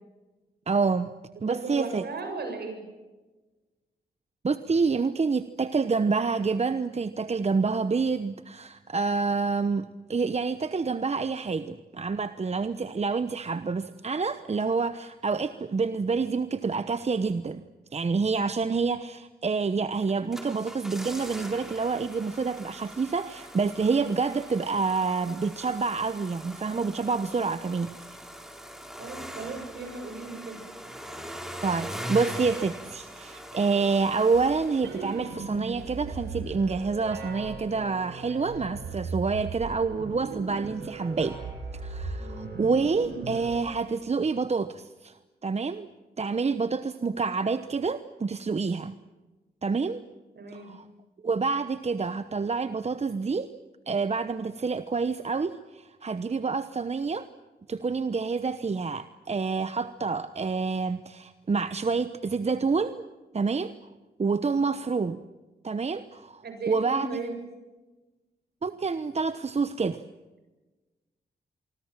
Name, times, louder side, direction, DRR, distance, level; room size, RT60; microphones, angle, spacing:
voice 1, 0.7-2.0 4.4-17.6 17.9-28.2 31.6-41.4 41.7-45.1 45.4-45.9 46.2-48.9 49.6-50.0 50.5-50.8 51.2-53.5 53.9-57.3 57.7-63.0 63.3-63.7 64.2-65.2 65.6-67.1 68.6-70.0, right 4 dB, 35° right, 12 dB, 1.0 m, -28 dB
voice 2, 1.3-2.8 29.0-30.6 42.2-42.5 50.4-50.7 66.4-67.3, right 3 dB, 65° right, 5 dB, 7.5 m, -36 dB
sound 1, 20.0-35.5 35.8-35.9, equal, ahead, 4.5 m, -42 dB
sound 2, 34.3-43.6, right 4 dB, 90° right, 6.8 m, -38 dB
25.0 x 24.5 x 7.5 m, 1.2 s
cardioid pair, 55°, 18 cm